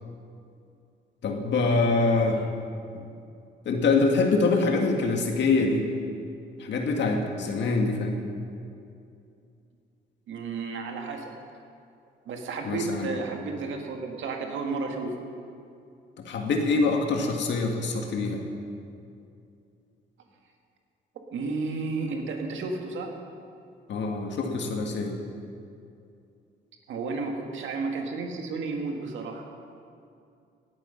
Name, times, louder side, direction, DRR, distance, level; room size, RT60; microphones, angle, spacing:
voice 1, 1.2-2.5 2.9-3.0 3.7-5.8 6.6-8.2 12.7-13.1 16.2-18.4 23.9-25.2, left 3 dB, 65° left, 2 dB, 1.9 m, -25 dB
voice 2, 10.3-11.3 12.3-15.2 21.3-23.1 26.9-29.4, right 3 dB, 75° right, 2 dB, 1.9 m, -32 dB
17.0 x 9.0 x 5.8 m, 2.5 s
cardioid pair, 90°, 20 cm